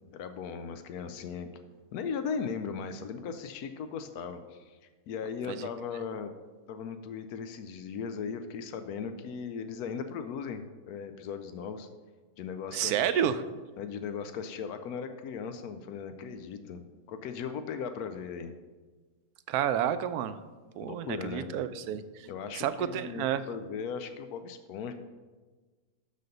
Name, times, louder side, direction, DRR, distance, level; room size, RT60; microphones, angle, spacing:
voice 1, 0.1-1.6 1.9-6.3 6.7-11.9 12.4-13.3 13.8-16.8 17.1-18.5 20.8-21.6 22.3-24.9, left 6 dB, 90° left, 8 dB, 1.1 m, -38 dB
voice 2, 12.7-13.4 19.5-20.4 20.8-22.3 22.5-23.4, right 9 dB, 90° right, 12 dB, 1.1 m, -30 dB
11.5 x 4.2 x 5.3 m, 1.3 s
omnidirectional pair, 1.6 m